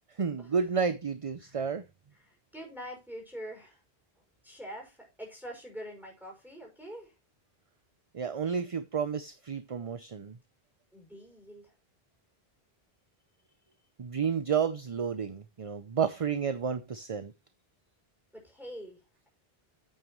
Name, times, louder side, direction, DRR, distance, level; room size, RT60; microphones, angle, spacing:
voice 1, 0.2-1.8 8.1-10.4 14.0-17.3, right 6 dB, 40° right, 0.6 m, -31 dB
voice 2, 2.2-3.8 4.4-7.1 10.9-11.7 18.3-19.3, equal, ahead, 6.0 m, -45 dB
9.1 x 9.0 x 3.1 m
omnidirectional pair, 1.0 m